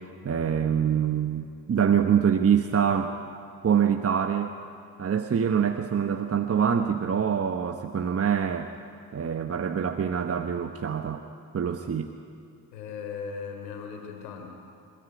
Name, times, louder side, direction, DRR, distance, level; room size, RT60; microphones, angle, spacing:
voice 1, 0.2-3.2 3.6-4.5 5.0-8.7 9.1-11.3 11.5-12.1, right 8 dB, 30° right, 6 dB, 1.2 m, -25 dB
voice 2, 12.7-14.5, left 6 dB, 90° left, 4 dB, 3.6 m, -37 dB
29.0 x 14.0 x 9.6 m, 2.3 s
hypercardioid pair, 70°, 47 cm